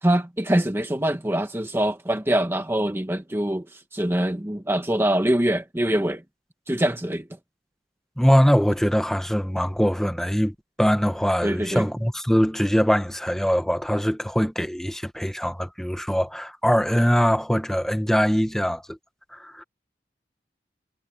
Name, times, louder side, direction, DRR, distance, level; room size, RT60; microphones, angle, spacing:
voice 1, 0.0-6.2 6.7-7.3 11.4-11.9, right 1 dB, 15° right, 1.1 m, -24 dB
voice 2, 8.2-19.0 19.3-19.6, equal, 5° left, 1.4 m, -22 dB
head